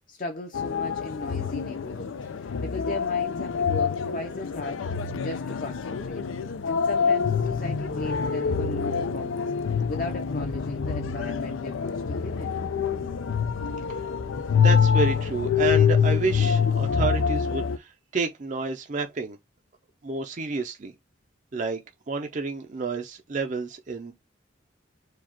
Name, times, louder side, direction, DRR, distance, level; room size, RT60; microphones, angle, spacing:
voice 1, 0.1-4.9 5.2-6.2 6.6-9.5 9.9-12.6, left 2 dB, 45° left, 0.7 m, -37 dB
sound 1, 0.5-17.8, left 6 dB, 90° left, 0.5 m, -26 dB
voice 2, 14.6-19.4 20.0-20.9 21.5-21.8 22.1-24.1, right 4 dB, 40° right, 0.5 m, -30 dB
4.7 x 2.3 x 4.3 m
head